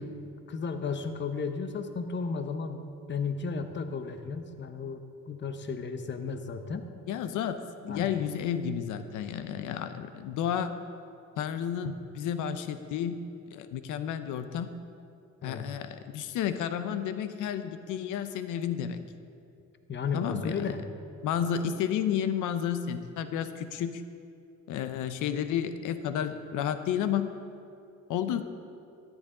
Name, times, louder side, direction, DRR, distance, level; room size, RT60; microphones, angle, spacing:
voice 1, 0.0-6.9 7.8-8.1 11.8-12.0 15.4-15.7 19.9-20.8, left 5 dB, 40° left, 8 dB, 0.8 m, -34 dB
voice 2, 7.1-7.6 7.9-10.8 11.4-13.2 13.5-14.7 15.4-19.0 20.1-20.7 21.2-24.0 24.7-27.3 28.1-28.4, left 9 dB, 90° left, 10 dB, 0.7 m, -31 dB
13.5 x 10.5 x 3.8 m, 2.6 s
cardioid pair, 90°, 30 cm